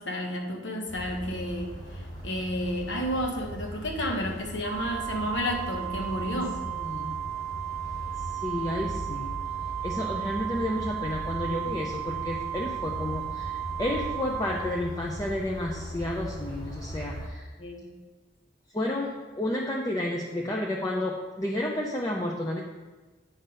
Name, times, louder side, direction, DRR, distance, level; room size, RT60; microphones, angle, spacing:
voice 1, 0.0-6.6 17.6-17.9, equal, 75° left, 1 dB, 1.1 m, -31 dB
sound 1, 0.9-17.3, equal, 35° left, 2.1 m, -39 dB
Organ, 4.6-15.4, right 11 dB, 45° right, 0.4 m, -35 dB
voice 2, 6.8-7.2 8.3-9.3 9.8-17.5 18.7-22.6, left 1 dB, 20° left, -1 dB, 0.6 m, -31 dB
9.2 x 3.9 x 5.3 m, 1.3 s
head